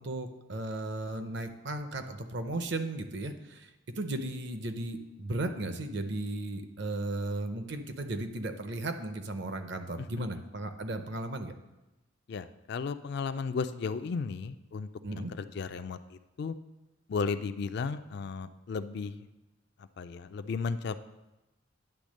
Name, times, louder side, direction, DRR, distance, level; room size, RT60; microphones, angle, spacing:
voice 1, 0.0-3.7 4.0-11.5 15.0-15.3, right 2 dB, 55° right, 8 dB, 0.6 m, -35 dB
voice 2, 12.3-14.9 15.2-16.5 17.1-19.2 20.0-21.0, left 5 dB, 50° left, 11 dB, 0.3 m, -34 dB
10.0 x 3.5 x 6.3 m, 1.0 s
head